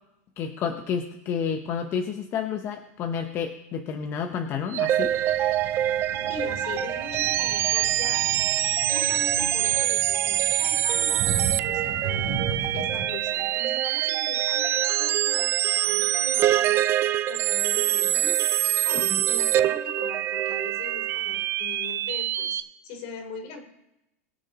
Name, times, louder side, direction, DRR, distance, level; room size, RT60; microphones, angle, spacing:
voice 1, 0.4-5.1 19.1-19.2, left 7 dB, 30° left, 6 dB, 0.9 m, -30 dB
sound 1, 4.7-22.6, right 12 dB, 30° right, 0.4 m, -25 dB
sound 2, 5.0-13.0, right 6 dB, 55° right, 3.3 m, -36 dB
voice 2, 6.3-8.2 8.8-12.5 12.7-16.8 17.3-18.5 18.8-23.6, left 5 dB, 50° left, 3 dB, 3.5 m, -41 dB
22.0 x 7.6 x 3.0 m, 0.88 s
supercardioid pair, 135°, 8 cm